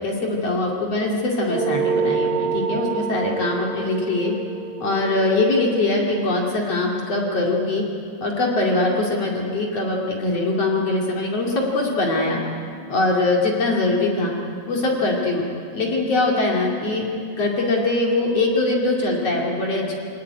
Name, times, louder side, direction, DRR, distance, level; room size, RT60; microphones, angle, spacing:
voice 1, 0.0-4.3 4.8-7.8 8.2-12.4 12.9-14.3 14.7-15.4 15.7-17.1 17.4-20.0, left 2 dB, 45° left, -2 dB, 3.2 m, -22 dB
sound 1, 1.5-6.3, right 5 dB, 75° right, 3.0 m, -27 dB
23.5 x 18.0 x 9.6 m, 2.5 s
omnidirectional pair, 4.2 m